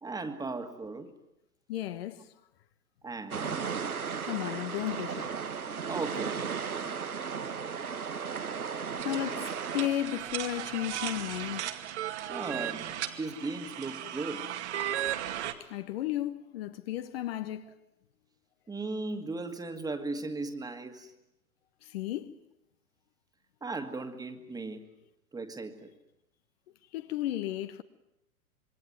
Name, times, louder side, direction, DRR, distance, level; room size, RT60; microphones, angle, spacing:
voice 1, 0.0-1.1 3.0-3.6 5.8-6.9 12.3-14.5 18.7-21.1 23.6-24.9 25.3-25.9, right 3 dB, 10° right, 2.1 m, -37 dB
voice 2, 1.7-2.3 4.2-5.4 9.0-11.7 15.6-17.7 21.8-22.4 26.9-27.8, left 13 dB, 45° left, 1.4 m, -34 dB
sound 1, 3.3-9.9, right 6 dB, 75° right, 1.6 m, -35 dB
sound 2, 9.0-15.5, right 11 dB, 50° right, 2.4 m, -36 dB
27.0 x 22.5 x 9.6 m
figure-of-eight pair, 110°, 43 cm